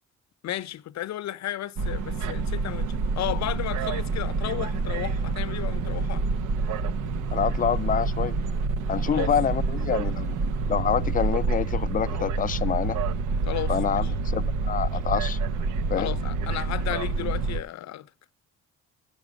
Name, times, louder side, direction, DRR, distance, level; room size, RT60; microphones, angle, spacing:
voice 1, 0.4-6.3 9.1-9.3 13.5-14.1 16.0-18.1, left 13 dB, 65° left, 0.7 m, -33 dB
sound 1, 1.8-17.6, right 4 dB, 85° right, 0.8 m, -27 dB
voice 2, 7.3-8.4 8.9-10.3 10.7-13.0 13.7-15.4 15.9-16.1, left 8 dB, 30° left, 0.4 m, -27 dB
8.9 x 6.8 x 6.2 m
cardioid pair, 90°, 30 cm